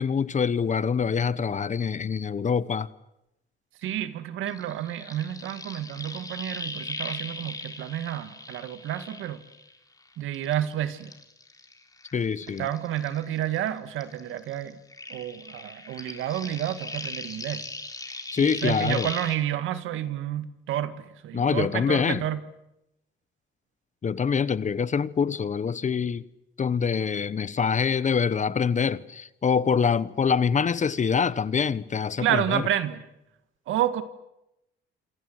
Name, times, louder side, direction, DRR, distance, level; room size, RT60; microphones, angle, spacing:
voice 1, 0.0-2.9 12.1-12.7 18.3-19.1 21.3-22.2 24.0-26.2 26.6-32.6, left 6 dB, 40° left, 1.1 m, -25 dB
voice 2, 3.8-9.4 10.2-11.1 12.6-14.8 15.1-17.7 18.4-22.4 32.2-33.0 33.7-34.0, right 11 dB, 85° right, 1.9 m, -30 dB
sound 1, 4.5-10.0 10.3-13.7 14.0-19.4, left 2 dB, 20° left, 3.7 m, -39 dB
27.5 x 26.0 x 7.9 m
cardioid pair, 90°, 20 cm